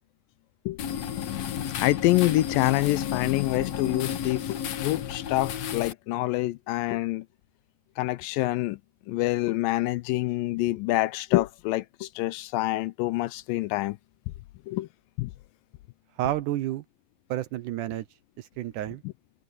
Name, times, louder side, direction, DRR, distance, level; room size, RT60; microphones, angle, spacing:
sound 1, 0.8-5.9, left 9 dB, 60° left, 2.0 m, -32 dB
voice 1, 1.8-7.3 8.0-8.8 9.1-14.0 14.7-14.9 15.2-15.3, left 18 dB, 80° left, 2.2 m, -26 dB
voice 2, 16.2-16.8 17.3-18.1 18.4-19.0, right 13 dB, 75° right, 2.1 m, -30 dB
omnidirectional pair, 4.1 m